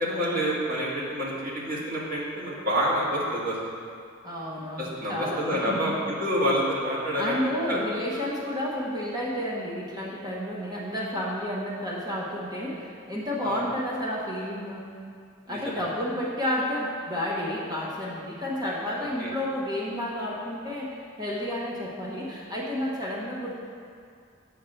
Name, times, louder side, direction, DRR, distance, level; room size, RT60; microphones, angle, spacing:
voice 1, 0.0-3.6 4.8-7.4 7.7-7.8 13.4-13.6 15.5-15.8 19.2-19.3, equal, 45° right, -5 dB, 1.8 m, -28 dB
voice 2, 4.2-5.8 7.2-14.9 15.5-23.6, left 1 dB, 20° right, -6 dB, 1.1 m, -31 dB
8.3 x 4.5 x 6.4 m, 2.3 s
head